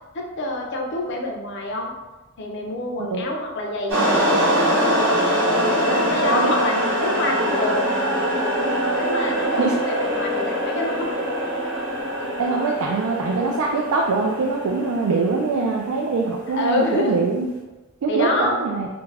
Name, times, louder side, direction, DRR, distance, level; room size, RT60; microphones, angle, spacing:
voice 1, 0.1-1.9 2.4-4.3 5.7-7.8 8.9-11.3 16.5-17.2 18.1-18.6, left 1 dB, 55° left, 1 dB, 0.5 m, -26 dB
sound 1, 3.9-15.4, equal, 60° right, 0.8 m, -23 dB
voice 2, 12.4-17.5 18.0-18.9, right 3 dB, 75° right, 0 dB, 0.3 m, -23 dB
2.4 x 2.2 x 3.2 m, 1.1 s
head